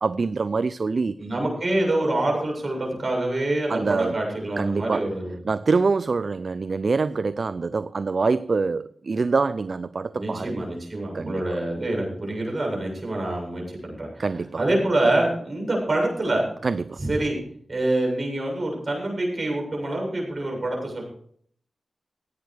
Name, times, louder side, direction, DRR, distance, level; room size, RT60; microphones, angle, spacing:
voice 1, 0.0-1.2 2.0-2.1 3.7-4.2 4.6-5.1 5.5-10.6 11.1-11.4 14.2-14.6 16.6-17.0, right 4 dB, 60° right, 0.4 m, -25 dB
voice 2, 1.2-5.4 10.1-14.3 14.6-16.5 17.0-17.4 17.7-21.0, right 1 dB, 45° right, 7.6 m, -26 dB
16.5 x 9.2 x 4.9 m
cardioid pair, 50°, 0 cm